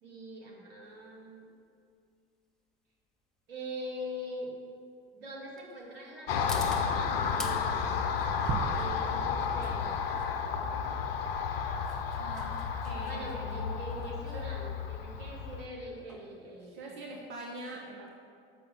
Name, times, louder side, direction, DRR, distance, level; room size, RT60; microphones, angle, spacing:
voice 1, 0.0-1.5 3.5-4.5 5.1-7.9 8.7-9.9 13.0-17.0, equal, 75° right, -2 dB, 2.1 m, -43 dB
sound 1, 0.9-17.5, left 1 dB, ahead, 1.0 m, -50 dB
Car passing by, 6.3-15.7, left 6 dB, 75° left, 0.7 m, -32 dB
sound 2, 8.5-11.4, right 7 dB, 30° right, 0.5 m, -39 dB
voice 2, 12.2-12.6 12.8-13.7 14.3-14.5 16.6-18.1, right 2 dB, 45° right, -1 dB, 1.1 m, -43 dB
6.7 x 6.0 x 6.8 m, 2.3 s
hypercardioid pair, 85°, 29 cm